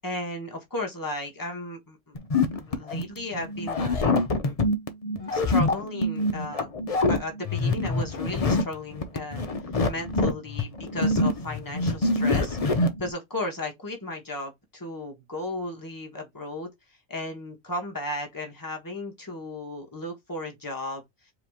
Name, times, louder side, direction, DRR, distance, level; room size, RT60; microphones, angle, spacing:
voice 1, 0.0-2.2 2.7-4.1 4.4-4.5 5.3-6.7 7.1-9.5 9.8-12.6 13.0-16.7 17.1-21.0, left 1 dB, 15° left, 1.3 m, -35 dB
sound 1, 2.2-13.1, left 2 dB, 40° left, 0.6 m, -25 dB
4.7 x 3.0 x 3.5 m
omnidirectional pair, 1.3 m